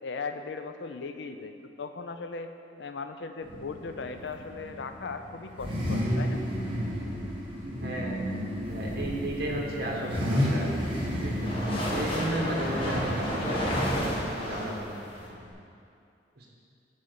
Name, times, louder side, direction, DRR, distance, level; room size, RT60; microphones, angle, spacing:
voice 1, 0.0-2.5 2.8-6.4, left 4 dB, 75° left, 8 dB, 0.5 m, -38 dB
Car / Idling / Accelerating revving vroom, 3.4-15.5, equal, 30° right, 1.7 m, -32 dB
voice 2, 7.6-8.2 8.7-11.5 11.9-15.0 16.4-16.5, right 1 dB, 60° right, -2 dB, 1.5 m, -34 dB
sound 1, 10.2-15.3, equal, 30° left, 1.7 m, -32 dB
8.6 x 4.0 x 6.8 m, 2.5 s
head